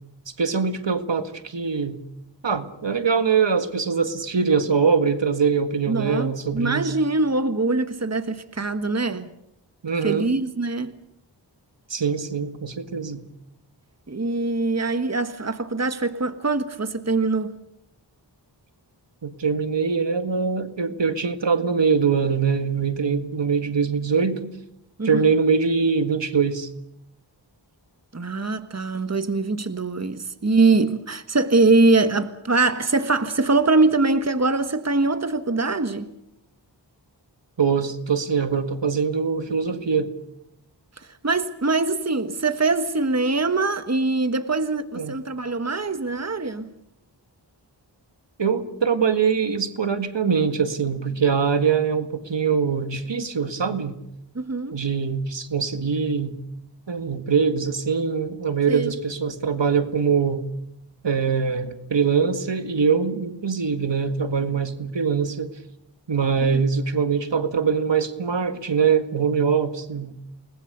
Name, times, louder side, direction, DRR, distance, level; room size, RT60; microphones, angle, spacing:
voice 1, 0.4-2.0 2.4-6.9 9.8-10.3 11.9-13.2 19.2-24.5 25.0-26.7 37.6-40.1 45.0-45.1 48.4-54.0 54.7-56.4 56.9-60.4 61.0-65.5 66.1-70.2, right 6 dB, 80° right, 1.9 m, -23 dB
voice 2, 5.9-9.3 10.0-10.9 14.1-17.5 25.0-25.2 28.1-36.1 41.0-46.7 54.3-54.8 58.7-58.9 66.4-66.6, right 3 dB, 35° right, 1.5 m, -23 dB
29.0 x 20.0 x 6.8 m
wide cardioid pair, 55°, 43 cm